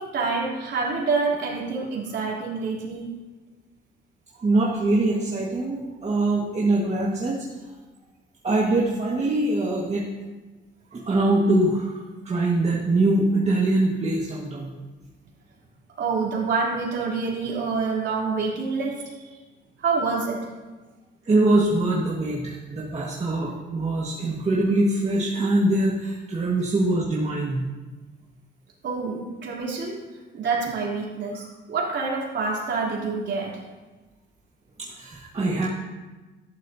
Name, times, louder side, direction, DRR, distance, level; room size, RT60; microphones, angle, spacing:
voice 1, 0.0-3.1 10.9-11.0 16.0-19.4 19.8-20.5 28.8-30.0 30.3-33.6, right 4 dB, 65° right, -4 dB, 3.4 m, -27 dB
voice 2, 4.4-7.5 8.4-10.1 10.9-11.9 12.2-14.7 21.2-27.7 34.8-35.7, right 2 dB, 35° right, -5 dB, 1.7 m, -23 dB
13.5 x 11.5 x 2.8 m, 1.2 s
cardioid pair, 90°, 20 cm